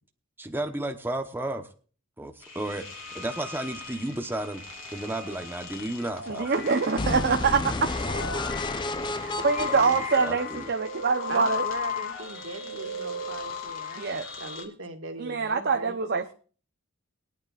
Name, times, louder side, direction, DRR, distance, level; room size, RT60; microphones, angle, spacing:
voice 1, 0.4-1.7 2.2-4.6 4.9-6.7 9.6-10.7, right 1 dB, 10° right, 5 dB, 0.9 m, -33 dB
sound 1, 2.4-14.6, left 4 dB, 70° left, 2.9 m, -36 dB
voice 2, 6.3-7.9 9.1-11.6 14.0-14.3 15.2-16.3, right 5 dB, 50° right, 6 dB, 0.8 m, -25 dB
sound 2, 7.0-10.9, left 2 dB, 20° left, 0.6 m, -32 dB
voice 3, 11.3-16.0, right 2 dB, 70° right, 6 dB, 1.9 m, -39 dB
22.0 x 9.4 x 2.4 m, 0.40 s
head